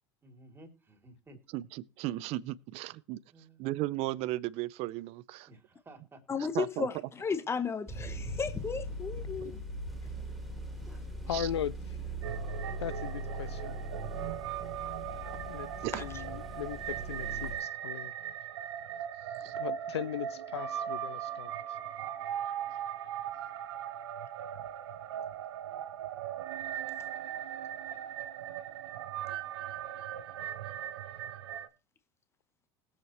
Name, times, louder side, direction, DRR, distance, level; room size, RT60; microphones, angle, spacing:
voice 1, 0.2-1.4 3.3-3.7 5.5-6.2, right 1 dB, 15° right, 3.0 m, -55 dB
voice 2, 1.5-3.2 3.6-5.5 6.5-6.9 9.4-9.5 11.3-11.5 15.8-16.0 19.4-19.5, right 17 dB, 50° right, 0.6 m, -35 dB
voice 3, 6.3-9.6 10.0-10.2 15.9-16.0, left 5 dB, 20° left, 1.1 m, -34 dB
sound 1, 7.9-17.6, right 1 dB, ahead, 3.0 m, -40 dB
voice 4, 11.2-12.0 12.8-13.8 15.5-15.7 16.0-18.1 19.6-21.8, left 10 dB, 90° left, 0.4 m, -38 dB
sound 2, 12.2-31.7, right 10 dB, 75° right, 0.9 m, -39 dB
20.0 x 7.5 x 3.1 m
hypercardioid pair, 90°, 13 cm